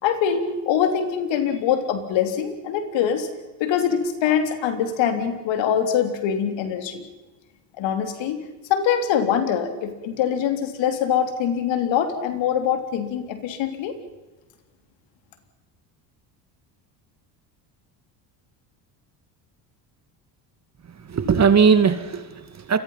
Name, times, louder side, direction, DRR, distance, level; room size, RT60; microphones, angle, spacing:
voice 1, 0.0-3.3 3.6-7.0 7.8-8.4 8.7-13.9, left 8 dB, 70° left, 7 dB, 3.7 m, -23 dB
voice 2, 20.9-22.8, right 6 dB, 35° right, 10 dB, 2.3 m, -19 dB
28.0 x 22.5 x 5.8 m, 1.1 s
supercardioid pair, 90°, 47 cm